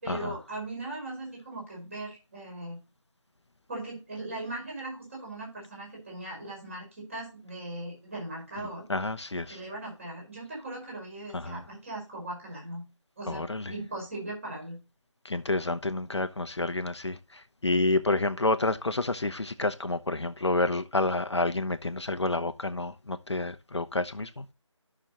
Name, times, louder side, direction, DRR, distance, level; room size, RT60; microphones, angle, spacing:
voice 1, 0.0-2.8 3.7-8.8 9.3-12.8 13.2-14.8, right 2 dB, 25° right, 5.1 m, -39 dB
voice 2, 8.9-9.6 11.3-11.6 13.3-13.7 15.2-17.2 17.6-24.4, left 2 dB, 60° left, 0.9 m, -29 dB
13.5 x 6.3 x 2.9 m
figure-of-eight pair, 170°, 16 cm